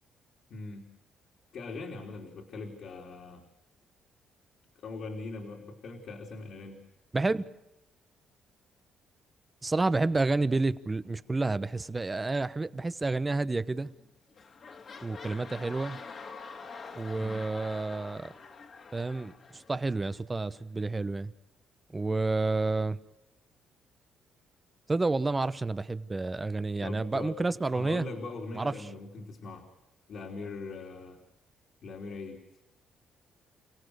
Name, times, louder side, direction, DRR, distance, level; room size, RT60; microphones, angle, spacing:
voice 1, 0.5-0.9 1.5-3.4 4.8-6.8 17.2-17.4 26.8-27.4 27.7-29.7 30.1-31.2 31.8-32.4, left 3 dB, 65° left, 3.5 m, -41 dB
voice 2, 7.1-7.5 9.6-13.9 15.0-16.0 16.9-18.3 18.9-21.3 21.9-23.0 24.9-28.1 28.5-28.9, right 3 dB, 20° right, 1.0 m, -30 dB
sound 1, 13.8-14.1 14.3-20.2 20.8-20.9, left 4 dB, 50° left, 2.4 m, -46 dB
29.5 x 17.0 x 6.5 m
cardioid pair, 90°, 0 cm